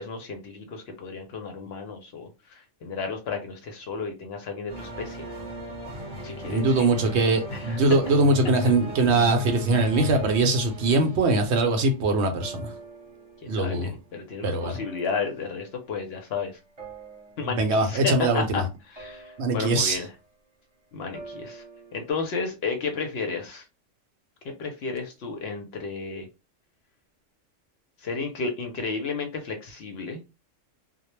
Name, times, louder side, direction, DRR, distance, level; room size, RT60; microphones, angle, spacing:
voice 1, 0.0-5.3 6.2-6.9 7.5-7.8 13.4-16.5 17.4-18.6 18.9-20.1 20.9-21.6 21.9-23.6 24.6-26.3 28.0-30.2, left 4 dB, 65° left, 0.7 m, -32 dB
sound 1, 4.7-14.1 14.4-15.8 16.8-17.8 19.0-19.7 21.1-22.1, equal, 35° right, 0.8 m, -39 dB
voice 2, 6.4-12.7 13.5-13.9 14.4-14.8 17.4-18.6 19.4-20.0, right 2 dB, 65° right, 0.8 m, -22 dB
2.2 x 2.0 x 3.0 m
omnidirectional pair, 1.3 m